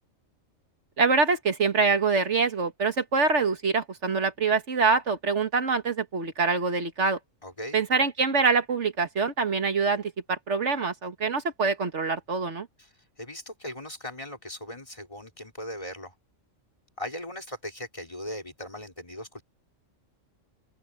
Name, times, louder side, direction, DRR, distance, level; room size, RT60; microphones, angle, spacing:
voice 1, 1.0-7.2 7.7-12.7, right 4 dB, 70° right, 1.9 m, -25 dB
voice 2, 7.4-7.8 12.8-12.9 13.2-16.1 17.0-19.4, left 1 dB, 25° left, 3.8 m, -38 dB
open air
omnidirectional pair, 1.3 m